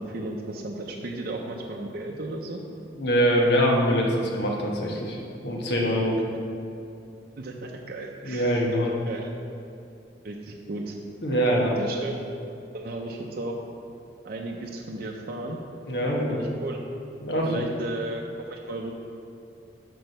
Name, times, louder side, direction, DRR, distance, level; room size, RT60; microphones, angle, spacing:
voice 1, 0.0-2.6 7.4-8.8 9.1-9.3 10.2-11.0 11.8-12.2 12.7-13.6 14.2-15.6 16.3-16.8 17.4-18.9, right 2 dB, 55° right, 0 dB, 0.6 m, -34 dB
voice 2, 2.9-5.2 5.4-6.2 8.3-8.9 11.2-11.7 15.9-16.4 17.2-17.5, equal, 65° left, -1 dB, 1.2 m, -23 dB
6.2 x 4.6 x 6.6 m, 2.6 s
head